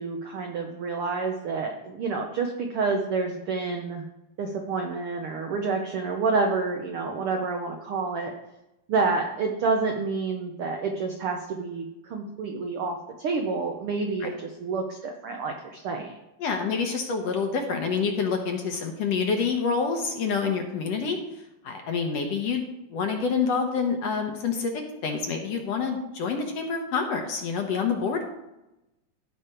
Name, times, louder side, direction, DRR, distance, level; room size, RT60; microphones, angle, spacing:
voice 1, 0.0-4.0 4.4-8.3 8.9-16.2, right 4 dB, 80° right, 3 dB, 1.2 m, -28 dB
voice 2, 16.4-21.2 21.6-22.6 22.9-28.2, left 5 dB, 65° left, 4 dB, 1.8 m, -27 dB
15.0 x 5.1 x 4.4 m, 0.94 s
omnidirectional pair, 3.6 m